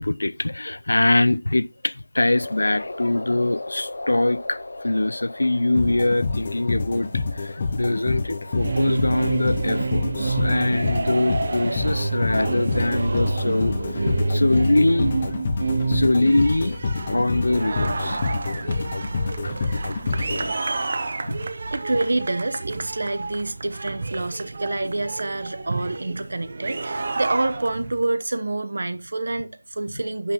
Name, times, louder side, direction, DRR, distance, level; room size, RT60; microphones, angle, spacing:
voice 1, 0.0-15.1 15.9-16.8 17.1-18.2 19.4-19.5 19.9-20.0 21.2-21.5, left 2 dB, 80° left, 0.4 m, -23 dB
sound 1, 2.2-14.7, left 2 dB, 55° left, 1.5 m, -40 dB
sound 2, 5.8-21.0, left 4 dB, 20° left, 0.6 m, -27 dB
sound 3, 8.5-28.0, right 3 dB, 30° right, 0.6 m, -29 dB
voice 2, 21.5-30.3, right 2 dB, 55° right, 0.9 m, -27 dB
11.0 x 5.8 x 3.0 m
figure-of-eight pair, 180°, 0 cm